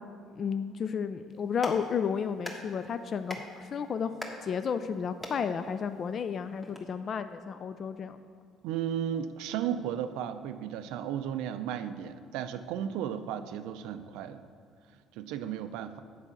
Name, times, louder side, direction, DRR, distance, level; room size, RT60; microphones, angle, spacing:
voice 1, 0.4-8.2, left 6 dB, 45° left, 10 dB, 0.3 m, -32 dB
Clapping, 1.3-6.8, left 1 dB, 15° left, 1.2 m, -45 dB
voice 2, 8.6-14.4 15.2-16.0, right 9 dB, 85° right, 11 dB, 0.4 m, -34 dB
8.1 x 4.8 x 7.0 m, 2.2 s
cardioid pair, 105°, 0 cm